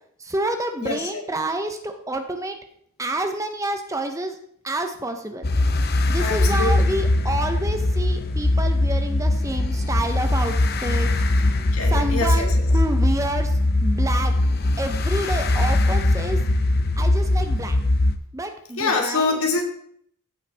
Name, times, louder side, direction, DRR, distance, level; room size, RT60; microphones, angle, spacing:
voice 1, 0.2-2.6 3.0-4.4 4.6-5.5 6.1-11.1 11.9-14.3 14.8-16.4 17.0-17.8 18.3-19.4, right 2 dB, 15° right, 6 dB, 0.6 m, -28 dB
voice 2, 0.8-1.2 6.2-6.9 11.7-12.5 18.8-19.6, left 3 dB, 70° left, 3 dB, 1.7 m, -25 dB
sound 1, 5.4-18.2, left 2 dB, 45° left, 0.6 m, -21 dB
15.5 x 5.6 x 3.3 m, 0.66 s
head